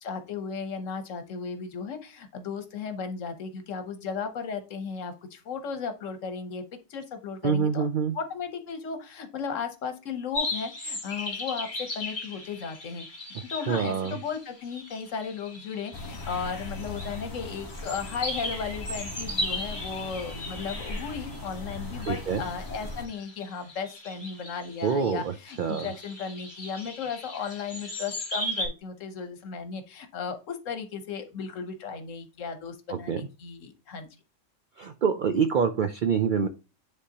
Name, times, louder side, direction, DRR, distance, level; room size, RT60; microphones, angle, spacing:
voice 1, 0.0-6.6 6.9-7.8 8.1-13.0 13.5-34.1, left 6 dB, 75° left, 8 dB, 1.3 m, -35 dB
voice 2, 7.4-8.1 13.7-14.2 22.0-22.4 24.8-25.9 32.9-33.2 34.8-36.5, right 6 dB, 70° right, 8 dB, 0.4 m, -26 dB
sound 1, 10.3-28.7, left 1 dB, 40° left, 2.2 m, -37 dB
sound 2, 15.9-23.1, left 2 dB, 15° left, 1.1 m, -39 dB
9.7 x 3.5 x 2.8 m, 0.31 s
omnidirectional pair, 1.3 m